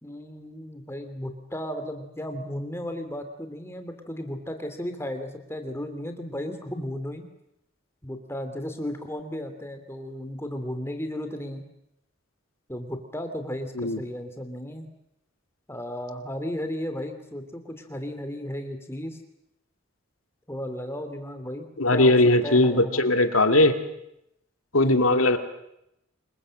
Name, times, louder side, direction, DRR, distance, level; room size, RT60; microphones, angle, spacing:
voice 1, 0.0-7.3 8.0-11.6 12.7-14.9 15.7-19.2 20.5-23.0 24.8-25.1, left 1 dB, 10° left, 7 dB, 2.7 m, -34 dB
voice 2, 21.8-23.8 24.7-25.4, left 2 dB, 90° left, 7 dB, 2.2 m, -19 dB
26.0 x 22.0 x 7.7 m, 0.81 s
head